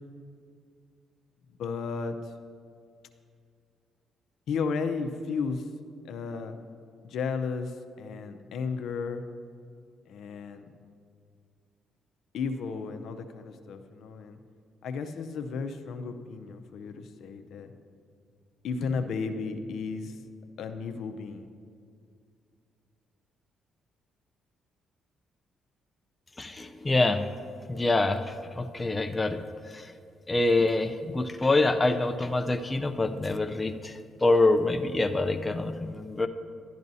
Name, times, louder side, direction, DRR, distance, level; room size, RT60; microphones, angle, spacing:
voice 1, 1.6-2.3 4.5-5.7 6.0-6.5 7.0-9.2 10.1-10.7 12.3-14.4 14.8-17.7 18.6-20.2 20.6-21.5, left 5 dB, 75° left, 7 dB, 0.6 m, -33 dB
voice 2, 26.4-27.3 27.7-28.2 28.6-29.4 29.7-29.9 30.3-36.3, left 2 dB, 20° left, 6 dB, 0.4 m, -25 dB
12.0 x 10.5 x 2.7 m, 2.2 s
cardioid pair, 90°, 0 cm